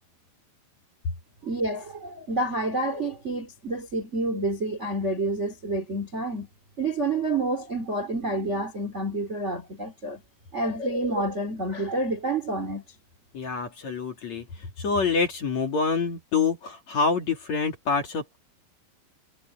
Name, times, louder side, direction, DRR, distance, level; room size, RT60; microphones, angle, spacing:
voice 1, 1.4-6.5 6.8-10.2 10.5-12.8, right 2 dB, 30° right, 1.3 m, -28 dB
voice 2, 13.3-18.4, left 5 dB, 40° left, 3.2 m, -26 dB
omnidirectional pair, 5.6 m